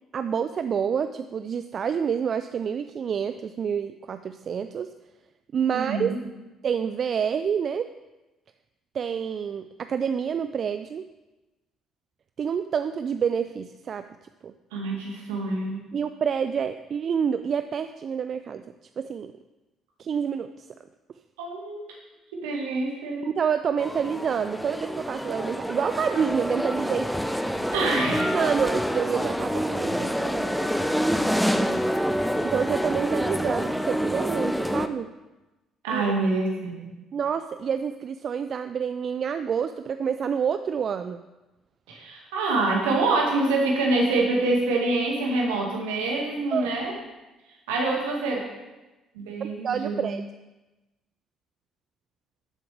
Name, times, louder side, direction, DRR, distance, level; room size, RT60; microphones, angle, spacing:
voice 1, 0.1-4.9 5.5-6.2 6.6-7.9 8.9-11.1 12.4-14.0 14.4-14.5 15.9-18.6 19.0-19.3 20.0-20.7 23.3-27.1 28.3-30.7 32.4-35.1 35.9-36.1 37.1-41.2 46.5-46.7 49.4-50.2, right 7 dB, 50° right, 10 dB, 0.3 m, -28 dB
voice 2, 5.7-6.2 14.7-15.8 21.4-21.8 22.3-23.3 27.7-28.3 35.8-36.9 41.9-46.9 47.7-48.5 49.2-50.1, right 2 dB, 75° right, -1 dB, 1.9 m, -26 dB
sound 1, 23.8-34.9, equal, ahead, 0.6 m, -27 dB
12.5 x 7.6 x 3.4 m, 1.1 s
figure-of-eight pair, 50°, 0 cm